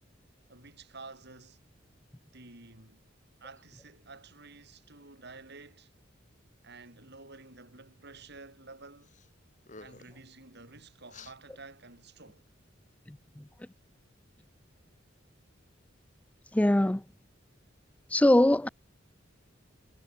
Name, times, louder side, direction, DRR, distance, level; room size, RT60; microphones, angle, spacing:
voice 1, 0.5-1.6 2.3-3.0 3.4-5.9 6.6-9.2 9.8-12.5, right 3 dB, 60° right, 7.7 m, -50 dB
sound 1, 9.0-9.3 9.6-10.2 11.1-11.4, left 4 dB, 40° left, 4.3 m, -51 dB
voice 2, 16.5-17.0 18.1-18.7, left 1 dB, 5° left, 0.4 m, -21 dB
head